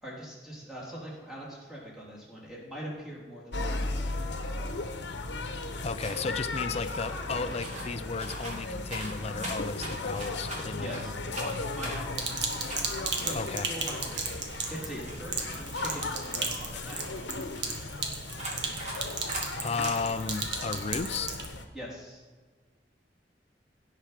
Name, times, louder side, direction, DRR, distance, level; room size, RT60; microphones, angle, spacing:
voice 1, 0.0-4.1 4.4-4.7 10.7-11.1 11.6-12.6 13.2-14.3 14.7-17.0 21.7-22.2, equal, ahead, -6 dB, 3.5 m, -42 dB
sound 1, 3.5-21.6, left 2 dB, 85° left, 1.0 m, -36 dB
voice 2, 5.8-11.6 13.3-13.7 19.6-21.4, left 4 dB, 35° left, 12 dB, 0.5 m, -34 dB
sound 2, 6.0-6.4 6.7-7.9 8.2-11.0 11.3-14.8 15.0-17.9 18.4-19.0 19.3-19.4 19.8-19.9, right 1 dB, 40° right, 3.1 m, -41 dB
Sink (filling or washing), 12.1-21.5, right 4 dB, 80° right, 1.6 m, -36 dB
16.5 x 5.9 x 5.0 m, 1.4 s
head